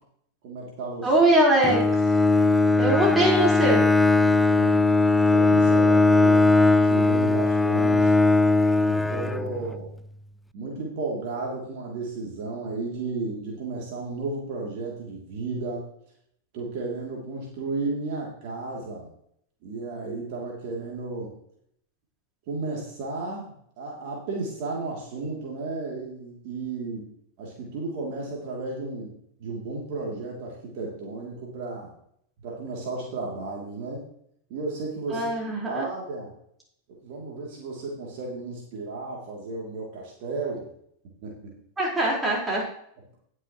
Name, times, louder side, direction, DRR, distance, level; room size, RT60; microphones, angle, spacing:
voice 1, 0.4-1.1 4.2-4.9 5.3-6.5 6.8-8.1 8.8-9.9 10.5-15.9 16.5-19.1 19.6-21.3 22.5-23.4 23.8-27.1 27.4-29.1 29.4-31.9 32.4-34.0 34.5-35.3 35.7-36.3 36.9-40.7 41.2-41.5, right 3 dB, 50° right, -2 dB, 2.9 m, -33 dB
voice 2, 1.0-1.8 2.8-3.8 35.1-35.9 41.8-42.6, right 1 dB, 10° right, -3 dB, 4.4 m, -21 dB
Bowed string instrument, 1.6-9.8, left 3 dB, 5° left, 0.4 m, -19 dB
19.0 x 6.5 x 3.1 m, 0.68 s
figure-of-eight pair, 90°, 0 cm